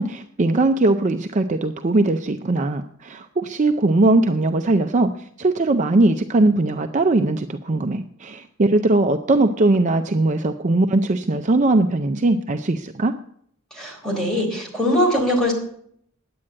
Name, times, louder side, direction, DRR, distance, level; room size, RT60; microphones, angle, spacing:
voice 1, 0.0-13.1, right 2 dB, 35° right, 8 dB, 0.5 m, -20 dB
voice 2, 13.7-15.5, left 1 dB, 5° left, -2 dB, 3.7 m, -21 dB
10.0 x 8.6 x 8.7 m, 0.67 s
head